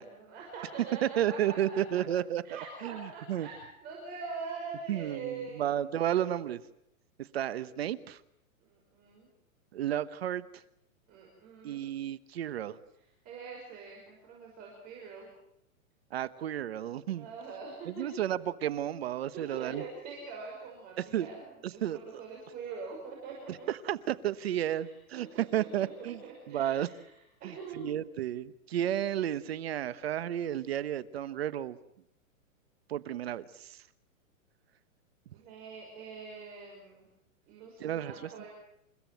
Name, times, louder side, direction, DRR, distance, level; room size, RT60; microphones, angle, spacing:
voice 1, 0.0-1.8 2.4-5.6 8.6-9.3 11.1-11.9 12.9-15.3 17.2-18.1 19.3-23.7 24.8-27.1 27.4-27.9 35.3-37.0 37.5-38.5, right 4 dB, 20° right, -1 dB, 6.0 m, -44 dB
voice 2, 1.0-3.5 4.9-6.6 7.2-8.2 9.7-10.6 11.6-12.8 16.1-17.3 17.8-19.8 21.0-21.3 21.6-22.2 23.7-26.9 27.4-31.8 32.9-33.8 37.8-38.1, right 11 dB, 45° right, 15 dB, 1.2 m, -32 dB
29.5 x 16.0 x 9.2 m, 0.78 s
hypercardioid pair, 175°, 41 cm